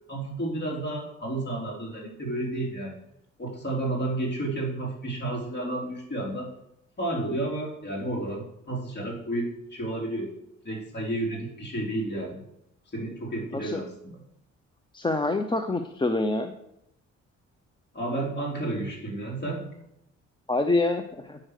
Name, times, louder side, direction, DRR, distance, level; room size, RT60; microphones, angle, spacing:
voice 1, 0.1-3.0 3.4-6.5 7.0-10.3 10.6-12.4 12.9-14.2 17.9-19.7, right 1 dB, 35° left, -2 dB, 3.8 m, -31 dB
voice 2, 14.9-16.5 20.5-21.4, left 2 dB, 15° left, 6 dB, 0.7 m, -26 dB
8.7 x 6.3 x 6.6 m, 0.80 s
cardioid pair, 90°, 30 cm